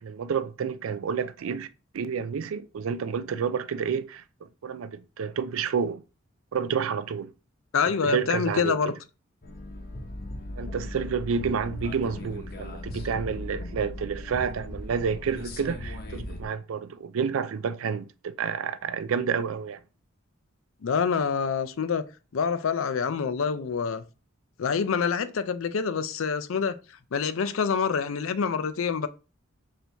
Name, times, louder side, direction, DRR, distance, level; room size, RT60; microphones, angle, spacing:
voice 1, 0.0-1.7 1.9-6.0 6.5-7.3 8.0-8.9 10.6-19.8, right 6 dB, 80° right, 0.4 m, -29 dB
voice 2, 7.7-8.9 20.8-22.1 22.3-24.0 24.6-26.8 27.1-29.1, left 6 dB, 75° left, 0.5 m, -26 dB
sound 1, 9.4-16.5, left 1 dB, 50° left, 0.8 m, -38 dB
4.4 x 2.7 x 3.4 m
head